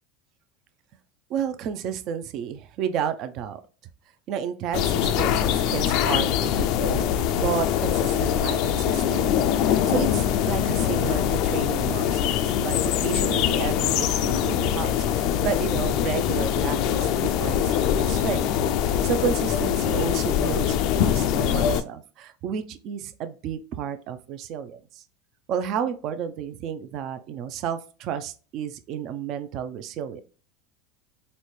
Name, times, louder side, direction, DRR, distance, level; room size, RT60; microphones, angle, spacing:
voice 1, 1.3-3.6 4.3-18.4 18.8-25.0 25.5-30.2, right 8 dB, 50° right, 10 dB, 0.4 m, -32 dB
sound 1, 4.7-21.8, left 9 dB, 60° left, 0.3 m, -23 dB
4.0 x 2.1 x 3.1 m, 0.36 s
hypercardioid pair, 100°, 0 cm